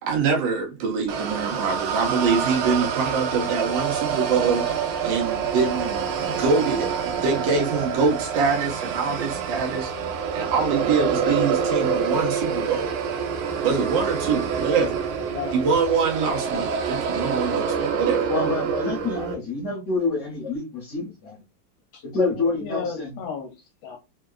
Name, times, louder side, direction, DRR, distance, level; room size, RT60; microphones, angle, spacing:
voice 1, 0.0-4.7 5.0-6.1 6.4-9.9 10.3-12.9 13.6-15.0 15.5-18.3, right 5 dB, 70° right, 1.3 m, -24 dB
sound 1, 1.1-19.3, right 6 dB, 85° right, 1.5 m, -27 dB
voice 2, 15.3-15.6 21.9-24.0, left 6 dB, 75° left, 1.3 m, -35 dB
voice 3, 18.3-21.4 22.0-23.1, left 3 dB, 45° left, 1.1 m, -27 dB
3.6 x 2.2 x 2.3 m
omnidirectional pair, 2.3 m